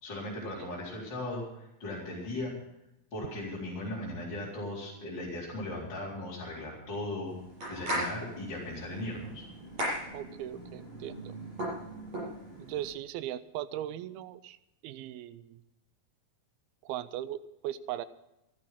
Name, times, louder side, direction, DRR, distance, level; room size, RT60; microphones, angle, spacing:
voice 1, 0.0-2.5 3.1-7.3 7.7-9.5, left 1 dB, 30° left, -7 dB, 4.5 m, -37 dB
sound 1, 7.3-12.9, right 1 dB, 45° right, 8.3 m, -38 dB
voice 2, 10.1-11.3 12.6-14.6 14.8-15.6 16.8-18.1, right 12 dB, 90° right, 15 dB, 2.6 m, -38 dB
15.0 x 12.5 x 5.8 m, 0.88 s
omnidirectional pair, 4.2 m